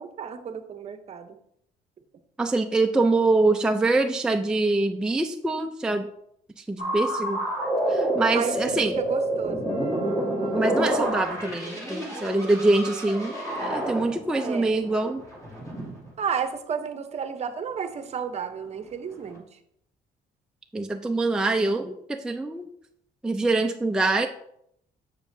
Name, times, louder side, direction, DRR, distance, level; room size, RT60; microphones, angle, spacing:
voice 1, 0.0-1.4 8.3-9.7 14.4-14.8 16.2-19.4, right 6 dB, 40° right, 8 dB, 0.8 m, -32 dB
voice 2, 2.4-6.1 6.6-7.4 7.9-8.9 10.5-13.3 13.6-15.2 20.7-22.7 23.2-24.3, right 2 dB, 5° right, 3 dB, 0.4 m, -24 dB
sound 1, 6.8-16.1 19.1-19.4, right 1 dB, 20° left, 2.5 m, -28 dB
7.3 x 6.9 x 2.7 m, 0.71 s
cardioid pair, 110°, 17 cm